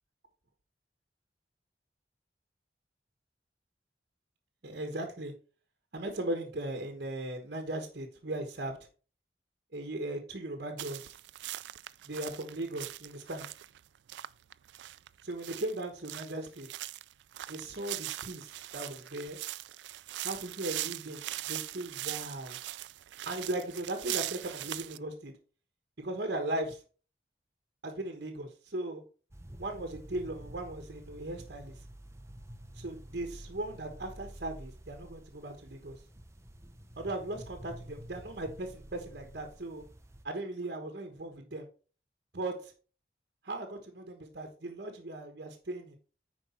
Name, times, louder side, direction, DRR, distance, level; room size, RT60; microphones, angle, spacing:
voice 1, 4.6-5.3 5.9-8.8 9.7-11.1 12.0-13.5 15.2-16.7 17.5-19.4 20.2-22.6 23.2-25.4 26.0-26.8 27.8-29.0 29.6-31.8 32.7-36.0 37.0-39.8 40.2-41.7 42.3-42.7 43.4-46.0, right 1 dB, 60° right, 3 dB, 1.2 m, -38 dB
sound 1, 10.8-25.0, right 15 dB, 75° right, 0.3 m, -40 dB
sound 2, 29.3-40.3, right 1 dB, 15° right, 0.8 m, -49 dB
9.9 x 4.8 x 4.3 m, 0.38 s
head